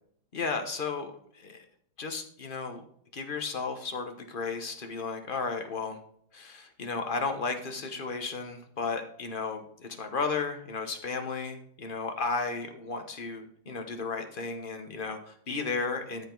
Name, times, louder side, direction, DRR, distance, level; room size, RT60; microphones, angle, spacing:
voice 1, 0.3-1.6 2.0-2.8 3.1-6.0 6.3-16.3, left 4 dB, 30° left, 6 dB, 1.1 m, -34 dB
13.5 x 5.2 x 3.9 m, 0.68 s
omnidirectional pair, 2.1 m